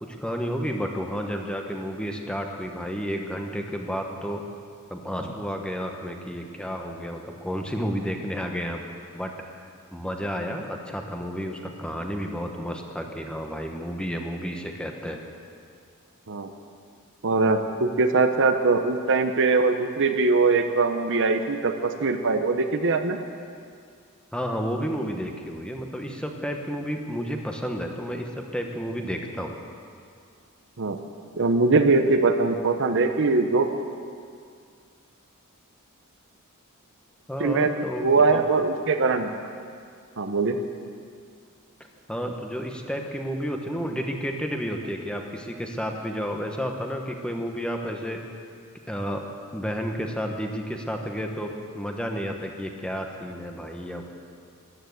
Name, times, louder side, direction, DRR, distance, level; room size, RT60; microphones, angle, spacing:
voice 1, 0.0-4.4 4.9-8.8 9.1-9.6 9.9-15.2 24.3-29.6 37.3-38.4 42.1-48.2 48.9-49.2 49.5-54.0, equal, 5° left, 2 dB, 1.2 m, -31 dB
voice 2, 17.2-23.2 30.8-31.0 31.3-33.7 37.4-39.4 40.2-40.6, right 3 dB, 60° right, 7 dB, 0.9 m, -22 dB
14.0 x 11.0 x 8.0 m, 2.3 s
head